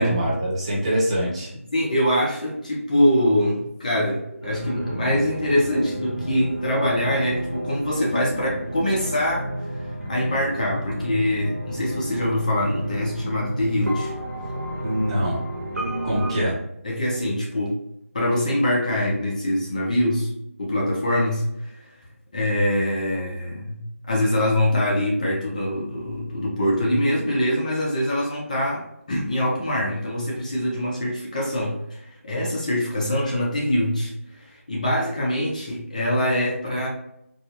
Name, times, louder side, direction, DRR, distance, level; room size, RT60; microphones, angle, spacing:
voice 1, 0.0-1.5 14.8-15.4 16.0-16.5, equal, 25° right, -6 dB, 1.0 m, -24 dB
voice 2, 1.7-9.5 10.1-14.1 16.8-17.8 18.1-20.3 20.6-21.9 22.3-23.8 24.1-28.8 29.1-36.9, left 1 dB, 30° left, -3 dB, 0.7 m, -24 dB
sound 1, 4.4-16.3, right 1 dB, 90° right, 1.1 m, -32 dB
4.2 x 2.2 x 2.9 m, 0.77 s
figure-of-eight pair, 165°, 8 cm